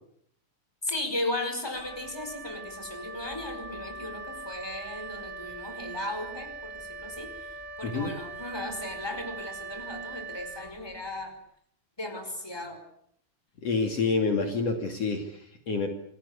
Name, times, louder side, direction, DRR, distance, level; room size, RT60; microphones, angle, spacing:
voice 1, 0.8-11.4 12.0-12.8, left 1 dB, 5° left, 6 dB, 5.1 m, -36 dB
Wind instrument woodwind instrument, 1.7-11.2, right 3 dB, 15° right, 5.6 m, -41 dB
voice 2, 13.6-15.9, left 4 dB, 55° left, 4 dB, 3.4 m, -28 dB
28.5 x 19.5 x 8.4 m, 0.70 s
omnidirectional pair, 3.5 m